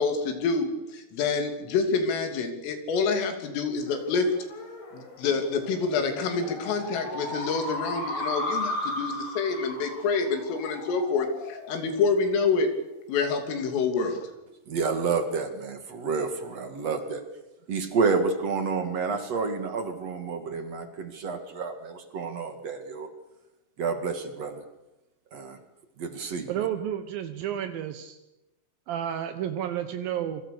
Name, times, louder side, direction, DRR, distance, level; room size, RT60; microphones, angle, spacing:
voice 1, 0.0-4.3 4.9-12.7 13.1-14.2, left 4 dB, 80° left, 7 dB, 5.5 m, -27 dB
sound 1, 3.9-12.7, left 1 dB, 55° left, 7.7 m, -36 dB
voice 2, 14.7-17.2 17.7-23.1 23.8-24.6 25.3-25.6 26.0-26.5, right 4 dB, 50° right, 7 dB, 2.1 m, -29 dB
voice 3, 26.5-28.2 28.9-30.4, right 10 dB, 75° right, 8 dB, 2.2 m, -31 dB
27.5 x 24.0 x 6.9 m, 0.96 s
omnidirectional pair, 5.8 m